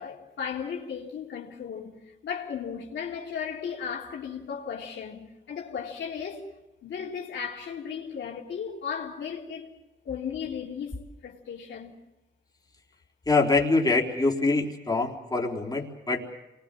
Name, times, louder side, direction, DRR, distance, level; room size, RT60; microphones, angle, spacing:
voice 1, 0.0-6.5 6.8-9.8 10.1-12.0, left 7 dB, 75° left, 3.5 m, -36 dB
voice 2, 13.3-16.2, left 3 dB, 20° left, 4.1 m, -24 dB
27.5 x 21.5 x 7.6 m
cardioid pair, 75°, 19 cm